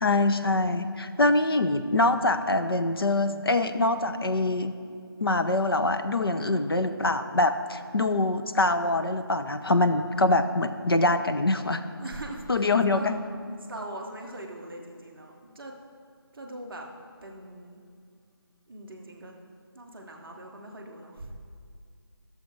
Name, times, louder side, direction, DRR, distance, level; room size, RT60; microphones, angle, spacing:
voice 1, 0.0-4.7 5.2-11.8 12.5-13.2, left 2 dB, 70° left, 8 dB, 0.8 m, -24 dB
voice 2, 6.4-6.9 12.0-15.7 16.3-16.9 17.2-17.8 18.7-19.3 19.7-21.4, right 1 dB, 5° right, -12 dB, 0.7 m, -41 dB
12.5 x 6.8 x 4.8 m, 2.3 s
figure-of-eight pair, 170°, 13 cm